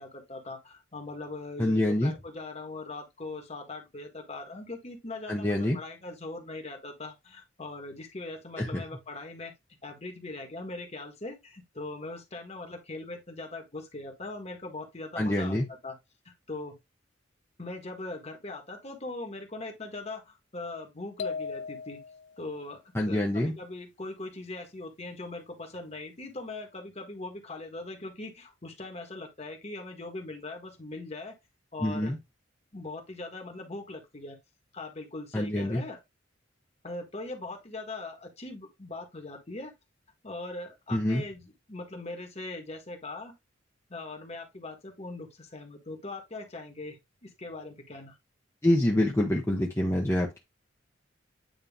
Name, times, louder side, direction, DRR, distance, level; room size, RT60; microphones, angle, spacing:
voice 1, 0.0-9.5 9.8-16.0 16.2-16.8 17.6-22.0 22.4-31.4 31.7-32.1 32.7-34.4 34.7-36.0 36.8-39.7 40.2-43.3 43.9-48.1, left 2 dB, 35° left, 1.5 m, -40 dB
voice 2, 1.6-2.1 5.3-5.8 8.6-8.8 15.1-15.7 22.9-23.5 31.8-32.2 35.3-35.8 40.9-41.2 48.6-50.4, left 1 dB, 15° left, 0.9 m, -26 dB
sound 1, 21.2-22.4, left 5 dB, 60° left, 0.4 m, -36 dB
9.1 x 3.1 x 3.5 m
head